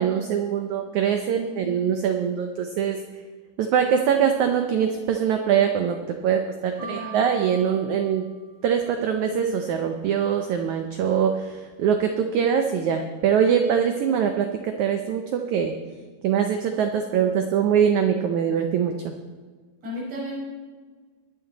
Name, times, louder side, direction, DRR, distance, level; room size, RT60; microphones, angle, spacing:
voice 1, 0.0-3.0 3.6-8.3 8.6-15.7 16.2-19.1, right 8 dB, 85° right, 5 dB, 1.6 m, -23 dB
voice 2, 1.4-1.8 6.8-7.3 19.8-20.3, left 1 dB, 40° right, -6 dB, 6.3 m, -35 dB
sound 1, 6.8-8.9, right 10 dB, 80° left, 7.3 m, -42 dB
22.5 x 8.8 x 4.1 m, 1.4 s
omnidirectional pair, 4.4 m